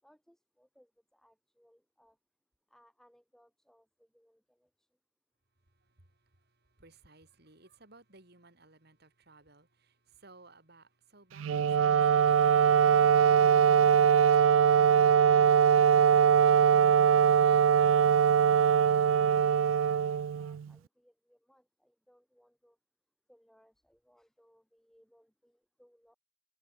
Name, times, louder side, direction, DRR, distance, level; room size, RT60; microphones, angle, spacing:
voice 1, 0.0-2.2 2.7-4.9 19.8-22.8 23.3-26.2, equal, ahead, 6.3 m, -66 dB
voice 2, 5.6-16.2, right 3 dB, 55° right, 4.3 m, -60 dB
Wind instrument woodwind instrument, 11.4-20.7, right 8 dB, 90° right, 0.4 m, -22 dB
head